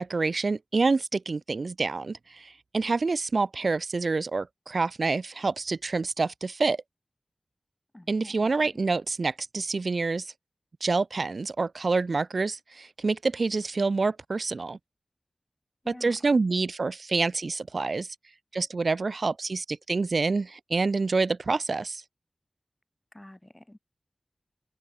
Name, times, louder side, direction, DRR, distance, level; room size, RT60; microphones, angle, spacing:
voice 1, 0.0-6.8 8.1-10.3 10.8-14.8 15.9-18.1 18.5-22.0, right 3 dB, 70° right, 0.9 m, -27 dB
voice 2, 7.9-8.5 15.8-16.2 23.1-23.8, left 1 dB, 15° left, 4.8 m, -48 dB
wide cardioid pair, 70°, 0 cm